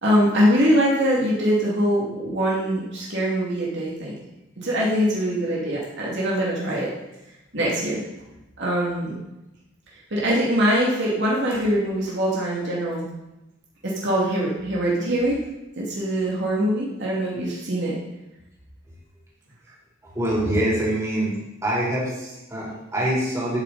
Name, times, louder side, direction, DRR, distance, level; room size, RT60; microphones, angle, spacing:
voice 1, 0.0-4.1 4.6-6.9 7.5-8.0 8.6-9.2 10.1-13.1 13.8-15.4 15.8-17.9, equal, 55° right, -5 dB, 2.7 m, -23 dB
voice 2, 20.1-21.3 21.6-23.6, right 1 dB, 15° right, -7 dB, 4.1 m, -24 dB
12.0 x 8.9 x 4.3 m, 0.95 s
head